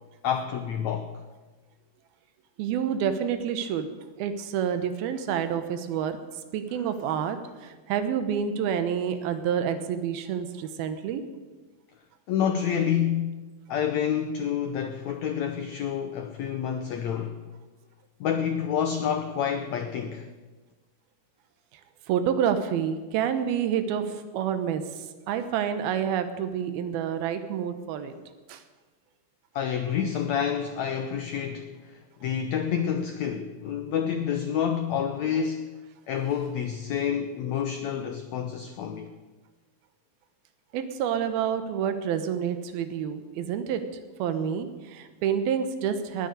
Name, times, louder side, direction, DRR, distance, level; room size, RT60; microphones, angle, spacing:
voice 1, 0.2-1.1 12.3-17.4 18.2-20.3 29.5-35.7 36.1-39.1, left 8 dB, 80° left, 1.6 m, -28 dB
voice 2, 2.6-3.9 4.2-6.2 6.5-11.2 22.1-28.2 28.5-28.6 40.7-43.8 44.2-46.3, right 8 dB, 85° right, 2.9 m, -28 dB
19.5 x 6.6 x 9.4 m
omnidirectional pair, 4.2 m